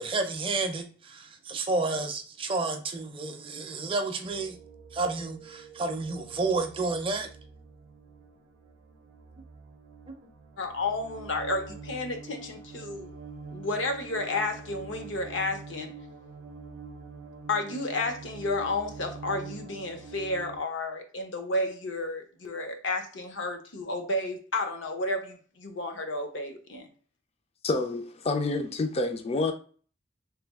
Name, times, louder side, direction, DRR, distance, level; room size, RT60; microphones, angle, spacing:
voice 1, 0.0-4.6 4.9-7.3 10.1-10.2, right 3 dB, 30° right, 0.5 m, -30 dB
sound 1, 4.2-20.6, right 4 dB, 90° right, 0.5 m, -46 dB
voice 2, 10.6-13.1 13.5-15.9 17.5-26.9, left 2 dB, 75° left, 0.7 m, -31 dB
voice 3, 27.6-29.5, left 3 dB, 35° left, 0.4 m, -28 dB
3.3 x 2.2 x 3.4 m
head